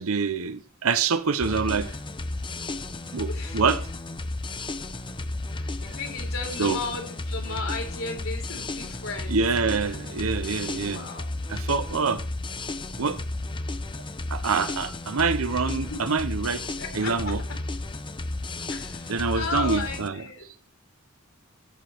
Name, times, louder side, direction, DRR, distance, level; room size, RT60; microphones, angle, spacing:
voice 1, 0.0-1.9 3.1-3.9 6.6-6.8 9.3-11.1 11.5-12.2 13.0-13.2 14.3-16.6 16.9-17.4 19.1-20.2, right 5 dB, 90° right, 0.8 m, -26 dB
sound 1, 1.4-20.1, left 2 dB, 25° left, 0.8 m, -33 dB
voice 2, 3.3-3.6 5.5-9.3 10.7-11.3 15.6-16.0 16.8-17.4 18.7-20.4, left 4 dB, 75° left, 4.2 m, -35 dB
14.5 x 5.0 x 7.7 m
head